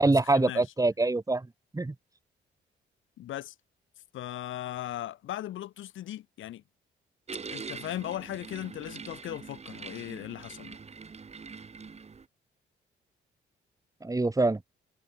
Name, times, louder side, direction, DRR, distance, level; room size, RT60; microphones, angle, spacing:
voice 1, 0.0-1.9 14.0-14.6, right 2 dB, 15° right, 4.1 m, -25 dB
voice 2, 3.2-3.5 4.1-6.6 7.5-10.8, left 13 dB, 80° left, 4.0 m, -38 dB
sound 1, 7.3-12.3, right 5 dB, 35° right, 2.6 m, -43 dB
cardioid pair, 90°, 20 cm